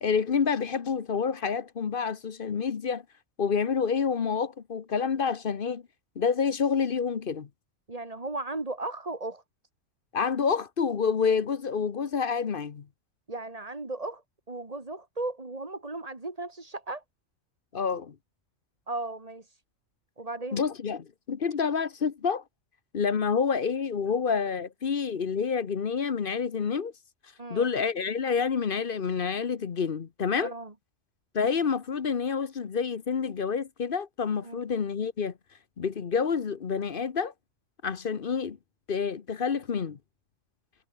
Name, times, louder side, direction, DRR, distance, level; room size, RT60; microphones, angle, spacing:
voice 1, 0.0-3.0 3.4-5.8 6.2-7.5 10.1-12.9 17.7-18.1 20.5-22.4 22.9-26.9 27.5-30.5 31.3-35.3 35.8-37.3 37.8-38.6 38.9-40.0, left 6 dB, 45° left, 1.0 m, -28 dB
voice 2, 7.9-9.4 13.3-14.2 14.5-17.0 18.9-19.4 20.2-20.6 27.4-27.7 30.4-30.7 34.4-34.6, right 2 dB, 30° right, 2.1 m, -36 dB
omnidirectional pair, 1.4 m